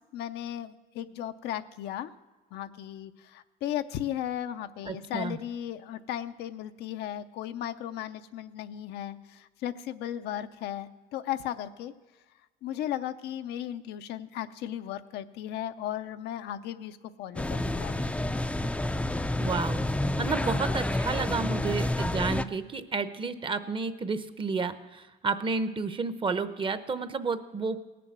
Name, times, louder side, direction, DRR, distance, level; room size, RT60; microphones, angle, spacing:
voice 1, 0.1-2.1 2.5-11.9 12.6-18.2, left 11 dB, 80° left, 10 dB, 0.6 m, -36 dB
voice 2, 4.9-5.4 19.4-19.8 20.2-27.8, right 4 dB, 30° right, 11 dB, 0.8 m, -31 dB
sound 1, 17.4-22.4, left 1 dB, 5° left, 0.4 m, -29 dB
18.0 x 6.9 x 7.4 m, 1.2 s
cardioid pair, 110°, 17 cm